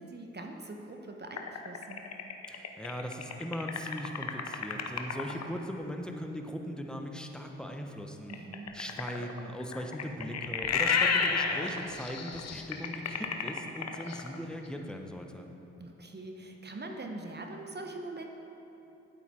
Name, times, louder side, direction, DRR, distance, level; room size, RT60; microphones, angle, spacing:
voice 1, 0.0-2.0 8.3-8.7 15.8-18.3, right 2 dB, 35° right, 3 dB, 1.2 m, -42 dB
sound 1, 1.4-5.4 8.3-14.4, left 6 dB, 55° left, 0.8 m, -31 dB
voice 2, 2.5-8.3 8.7-15.5, equal, 5° left, 3 dB, 1.2 m, -39 dB
10.0 x 8.1 x 4.5 m, 3.0 s
hypercardioid pair, 45°, 31 cm